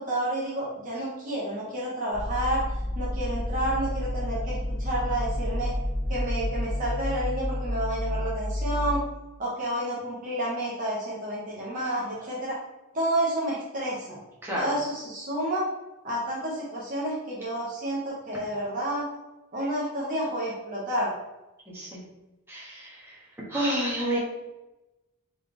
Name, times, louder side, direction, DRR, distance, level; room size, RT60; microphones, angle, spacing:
voice 1, 0.0-2.6 2.9-5.8 6.1-9.0 9.4-12.6 12.9-14.2 14.6-15.6 16.0-19.1 19.5-21.1, right 1 dB, 35° right, -5 dB, 0.9 m, -30 dB
sound 1, 2.1-9.0, left 1 dB, 15° left, 1.1 m, -30 dB
voice 2, 22.5-23.1 23.5-24.2, right 1 dB, 10° right, -6 dB, 1.2 m, -29 dB
4.0 x 3.4 x 3.7 m, 1.0 s
head